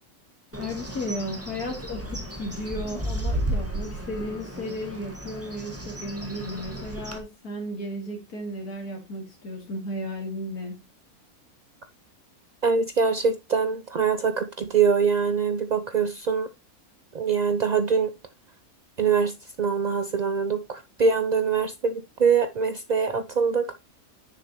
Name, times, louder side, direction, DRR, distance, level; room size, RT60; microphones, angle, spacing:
Bird, 0.5-7.2, right 1 dB, 10° right, 1.5 m, -33 dB
voice 1, 0.6-10.8, left 1 dB, 85° left, 2.6 m, -34 dB
voice 2, 12.6-16.5 17.1-18.1 19.0-23.7, right 5 dB, 65° right, 0.4 m, -24 dB
10.0 x 6.7 x 3.0 m
omnidirectional pair, 1.6 m